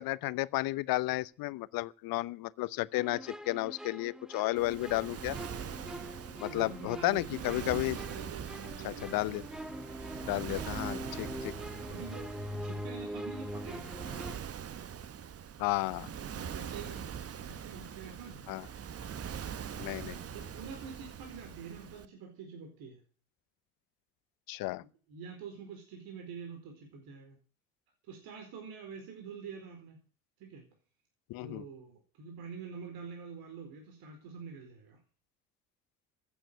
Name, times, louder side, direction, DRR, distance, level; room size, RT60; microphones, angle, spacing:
voice 1, 0.0-5.4 6.4-8.0 8.8-9.4 10.3-11.5 15.6-16.1 18.5-18.7 19.8-20.2 24.5-24.8 31.3-31.6, left 19 dB, 55° left, 0.8 m, -33 dB
sound 1, 3.0-14.4, equal, ahead, 1.5 m, -43 dB
Waves surf, 4.6-22.1, right 8 dB, 35° right, 1.2 m, -43 dB
voice 2, 6.3-9.5 10.8-11.1 11.8-14.1 16.1-17.1 17.4-18.5 19.4-19.6 20.2-23.0 24.8-27.4 28.0-30.0 30.4-30.6 31.4-35.0, right 5 dB, 60° right, 4.3 m, -46 dB
15.0 x 9.3 x 8.4 m
hypercardioid pair, 55°, 41 cm